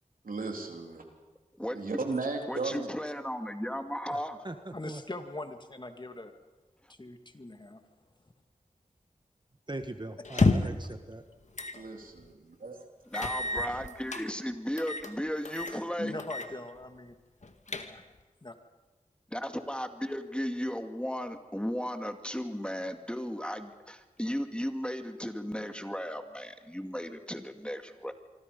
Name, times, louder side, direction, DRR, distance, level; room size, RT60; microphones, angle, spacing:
voice 1, 0.2-1.0 1.7-2.9 11.7-12.8, right 3 dB, 80° right, 3.5 m, -35 dB
voice 2, 2.5-4.4 13.1-16.2 19.3-28.1, equal, 5° left, 2.2 m, -35 dB
voice 3, 4.1-5.0 9.7-11.3, right 2 dB, 30° right, 1.6 m, -41 dB
voice 4, 4.7-6.3 7.0-7.8 10.3-10.7 15.7-17.1 17.7-18.0 18.4-18.5, left 2 dB, 35° left, 2.3 m, -42 dB
sound 1, 10.2-10.9 11.6-11.8 12.2-12.3 13.1-14.2 14.8-15.1 15.4-15.8 16.2-16.5 16.8-16.9 17.4-18.2, left 3 dB, 55° left, 2.0 m, -29 dB
26.5 x 24.5 x 5.5 m
cardioid pair, 45°, 14 cm